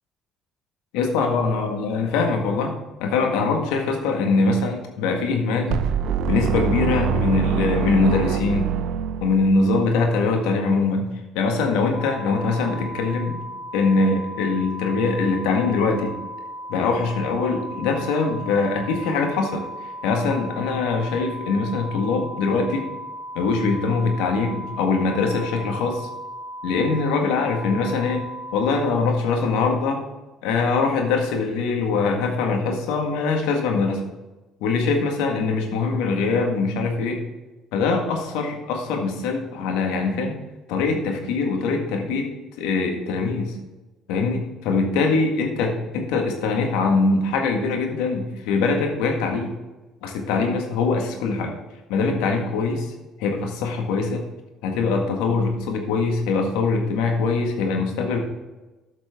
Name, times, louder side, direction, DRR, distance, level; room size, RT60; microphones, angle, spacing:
voice 1, 0.9-2.7 3.0-5.8 6.3-8.7 9.2-11.1 11.3-13.4 13.7-16.1 16.7-19.7 20.0-22.8 23.4-26.1 26.6-28.2 28.5-30.0 30.4-34.0 34.6-37.2 37.7-40.4 40.7-42.3 42.6-43.6 44.1-49.5 50.0-51.6 51.9-52.9 53.2-54.2 54.6-58.2, left 4 dB, 80° left, 3 dB, 1.7 m, -22 dB
sound 1, 5.7-9.7, right 8 dB, 65° right, 0.6 m, -24 dB
sound 2, 11.9-28.8, equal, 30° left, 3.1 m, -36 dB
12.5 x 6.0 x 3.7 m, 1.1 s
hypercardioid pair, 70°, 0 cm